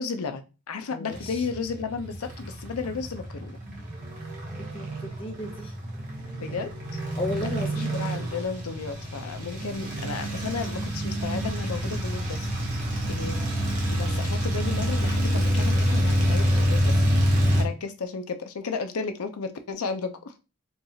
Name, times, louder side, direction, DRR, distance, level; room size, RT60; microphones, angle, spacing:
voice 1, 0.0-3.6 6.4-7.0 7.4-13.4 13.9-17.0 17.5-20.3, left 5 dB, 85° left, 7 dB, 0.6 m, -34 dB
sound 1, 1.1-17.6, equal, 35° right, 1.0 m, -27 dB
voice 2, 4.6-5.7 7.2-7.9, left 1 dB, 25° left, 5 dB, 0.5 m, -33 dB
4.5 x 2.4 x 2.7 m, 0.30 s
head